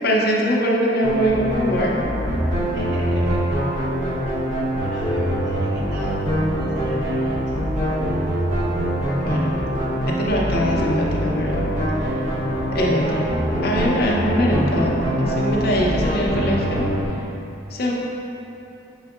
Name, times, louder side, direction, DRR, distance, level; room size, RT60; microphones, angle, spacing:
voice 1, 0.0-2.0 9.2-9.5 10.1-11.7 12.7-13.3 13.6-16.8 17.7-17.9, equal, 50° left, -3 dB, 0.6 m, -22 dB
sound 1, 1.0-17.1, equal, 40° right, 0.9 m, -23 dB
voice 2, 2.7-3.4 4.3-8.8, left 1 dB, 65° right, -6 dB, 1.0 m, -40 dB
6.2 x 3.5 x 2.3 m, 2.9 s
head